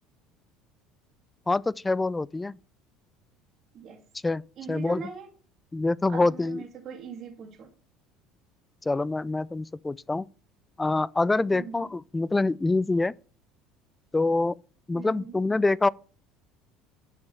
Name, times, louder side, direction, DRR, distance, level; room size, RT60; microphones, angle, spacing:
voice 1, 1.5-2.5 4.2-4.4 4.7-5.0 5.7-6.6 8.9-10.3 10.8-13.1 14.1-14.5 14.9-15.9, left 2 dB, 15° left, 0.3 m, -25 dB
voice 2, 4.6-5.3 6.1-7.7 11.5-11.9 14.9-15.4, right 7 dB, 45° right, 2.3 m, -41 dB
10.5 x 5.9 x 5.6 m
figure-of-eight pair, 65°, 0 cm